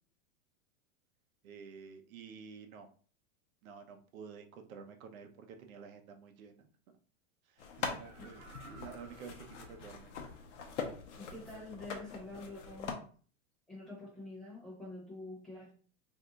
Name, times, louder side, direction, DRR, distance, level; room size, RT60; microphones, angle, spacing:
voice 1, 1.4-2.9 3.6-6.7 7.5-10.1, right 6 dB, 90° right, 5 dB, 0.7 m, -50 dB
sound 1, 7.6-12.9, left 6 dB, 60° left, 0.7 m, -43 dB
Laughter, 7.6-10.3 10.8-10.9, right 3 dB, 40° right, 0.6 m, -58 dB
voice 2, 11.2-13.0 13.7-15.7, left 2 dB, ahead, -7 dB, 0.8 m, -46 dB
2.7 x 2.2 x 3.8 m, 0.42 s
supercardioid pair, 170°, 41 cm